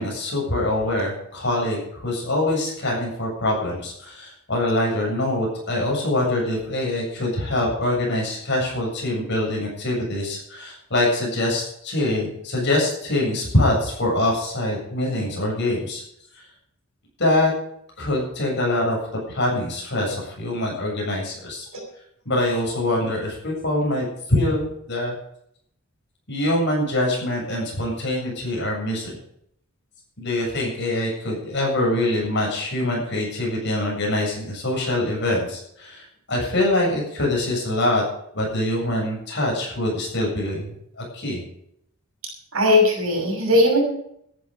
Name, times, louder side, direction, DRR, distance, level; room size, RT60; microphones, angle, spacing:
voice 1, 0.0-16.0 16.3-16.4 17.2-17.5 18.0-19.0 19.3-21.7 22.3-25.1 26.3-29.2 30.2-38.0 38.3-41.4, left 1 dB, 50° left, -1 dB, 7.6 m, -24 dB
voice 2, 42.5-43.8, left 1 dB, 65° right, 1 dB, 6.4 m, -18 dB
14.0 x 10.5 x 6.5 m, 0.72 s
head